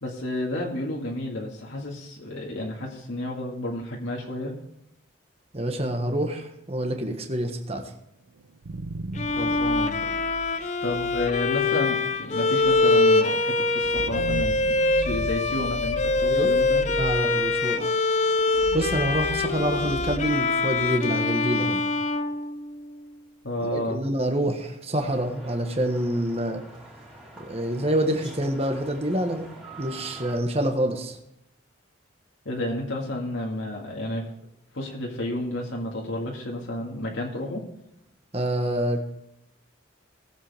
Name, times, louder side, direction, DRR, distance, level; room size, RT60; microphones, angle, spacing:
voice 1, 0.0-4.5 9.3-10.1 10.8-16.9 23.4-24.0 32.5-34.2 34.7-37.6, left 1 dB, 75° left, -2 dB, 2.1 m, -31 dB
voice 2, 5.5-7.9 10.6-10.7 16.3-16.5 16.9-17.9 18.7-21.8 23.6-26.6 27.4-29.5 29.8-31.2 38.3-39.0, right 1 dB, 30° right, 4 dB, 1.4 m, -27 dB
sound 1, 8.4-21.2, right 2 dB, 85° right, 0.6 m, -37 dB
Bowed string instrument, 9.2-23.1, left 3 dB, 35° left, 0.5 m, -24 dB
sound 2, 25.0-30.4, right 2 dB, 5° right, 3.0 m, -45 dB
18.5 x 7.7 x 3.6 m, 0.80 s
head